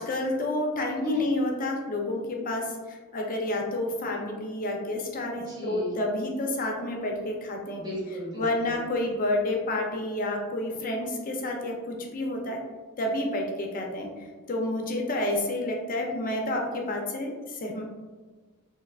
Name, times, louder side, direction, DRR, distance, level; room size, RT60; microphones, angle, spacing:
voice 1, 0.0-7.8 8.3-12.6 13.0-14.1 14.5-17.8, left 1 dB, 40° left, 1 dB, 0.5 m, -29 dB
voice 2, 5.5-5.9 7.8-8.7, equal, 20° right, -6 dB, 1.0 m, -37 dB
3.5 x 2.8 x 2.3 m, 1.3 s
head